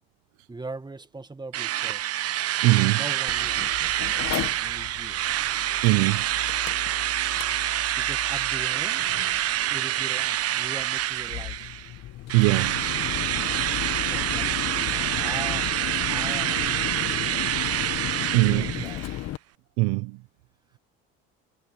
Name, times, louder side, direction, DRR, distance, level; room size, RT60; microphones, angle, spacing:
voice 1, 0.5-2.0 2.9-5.2 7.7-9.1 9.7-11.7 14.0-17.8 18.1-19.0, right 3 dB, 15° right, 1.8 m, -41 dB
Drill, 1.5-11.9 12.3-19.2, right 13 dB, 55° right, 1.2 m, -27 dB
voice 2, 2.6-3.0 5.8-6.3 12.3-12.8 18.3-18.7 19.8-20.2, right 24 dB, 80° right, 0.9 m, -21 dB
Mechanical fan, 3.3-19.4, left 14 dB, 60° left, 1.6 m, -35 dB
supercardioid pair, 75°, 29 cm